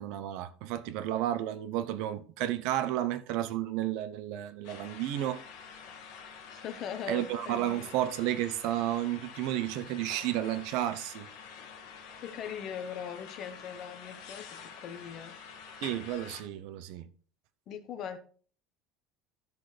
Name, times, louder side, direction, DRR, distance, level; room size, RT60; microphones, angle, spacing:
voice 1, 0.0-5.4 7.1-11.3 15.8-17.1, right 12 dB, 55° right, 0.7 m, -32 dB
sound 1, 4.6-16.4, left 6 dB, 60° left, 1.9 m, -48 dB
voice 2, 6.5-8.0 12.2-15.4 17.7-18.2, left 8 dB, 35° left, 1.0 m, -40 dB
13.0 x 6.0 x 3.3 m
cardioid pair, 175°, 0 cm